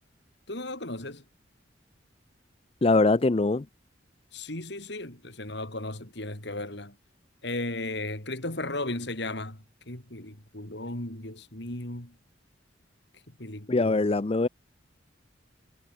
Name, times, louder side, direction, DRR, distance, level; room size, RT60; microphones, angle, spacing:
voice 1, 0.5-1.2 4.3-7.0 7.4-12.2 13.3-14.1, left 2 dB, 60° left, 4.6 m, -36 dB
voice 2, 2.8-3.7 13.7-14.5, left 3 dB, 30° left, 0.5 m, -22 dB
head